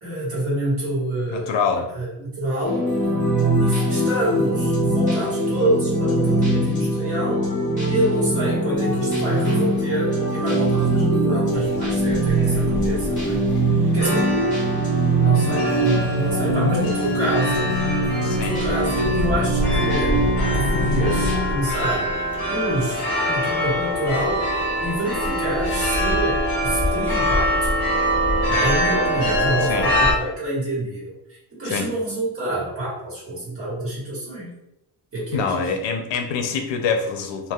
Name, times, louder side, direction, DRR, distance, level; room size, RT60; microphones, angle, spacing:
voice 1, 0.0-1.5 1.9-2.8 3.6-7.4 7.9-13.4 13.9-14.3 15.2-17.7 18.3-22.2 22.5-27.7 28.5-34.6 35.1-35.7, right 1 dB, 30° right, -7 dB, 1.5 m, -27 dB
voice 2, 1.3-1.9 13.8-13.9 18.2-18.5 29.6-29.9 31.6-31.9 35.3-37.5, left 5 dB, 85° left, 5 dB, 0.6 m, -25 dB
sound 1, 2.6-21.5, right 1 dB, 15° left, 1.4 m, -22 dB
sound 2, 11.5-30.2, left 1 dB, 5° right, 0.6 m, -31 dB
sound 3, 14.0-30.1, equal, 60° left, 1.4 m, -25 dB
3.3 x 2.5 x 2.3 m, 0.87 s
cardioid pair, 160°, 43 cm